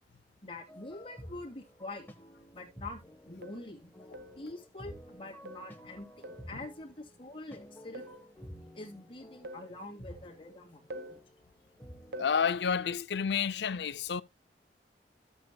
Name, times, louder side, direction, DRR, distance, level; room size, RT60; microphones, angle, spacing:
voice 1, 0.4-2.1 2.5-3.9 4.4-8.1 8.7-11.2, left 2 dB, 30° left, 2.4 m, -45 dB
sound 1, 0.7-12.3, equal, 10° left, 1.1 m, -52 dB
sound 2, 2.4-2.5 3.4-3.7 4.1-4.4 5.4-5.8 6.2-6.5 7.9-8.3 9.4-9.8 10.9-11.2 12.1-12.4, right 1 dB, 60° right, 0.8 m, -45 dB
voice 2, 12.2-14.2, left 6 dB, 75° left, 0.5 m, -30 dB
13.5 x 7.9 x 2.3 m
head